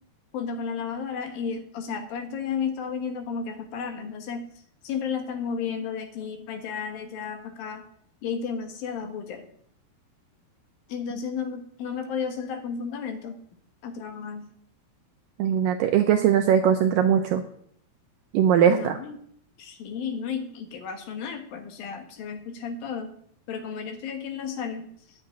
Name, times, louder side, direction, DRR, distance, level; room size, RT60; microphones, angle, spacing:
voice 1, 0.3-4.5 4.8-7.8 8.2-9.5 10.9-13.4 13.8-14.5 18.7-19.2 19.6-23.1 23.5-24.9, left 6 dB, 65° left, 6 dB, 3.0 m, -33 dB
voice 2, 15.4-17.4 18.3-19.0, right 9 dB, 80° right, 6 dB, 2.0 m, -20 dB
9.8 x 8.0 x 9.1 m, 0.64 s
omnidirectional pair, 4.7 m